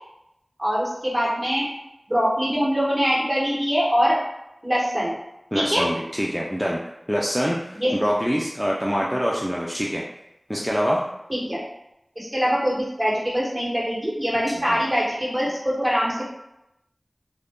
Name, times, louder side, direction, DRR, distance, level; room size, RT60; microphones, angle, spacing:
voice 1, 0.6-1.7 2.1-4.1 4.6-5.2 5.5-5.9 7.8-8.0 11.3-11.6 12.2-16.4, equal, 35° right, -6 dB, 1.1 m, -23 dB
voice 2, 5.5-6.8 7.1-10.0 10.5-11.0 14.7-14.8, equal, ahead, -4 dB, 0.4 m, -25 dB
2.4 x 2.1 x 3.5 m, 0.85 s
wide cardioid pair, 45°, 0 cm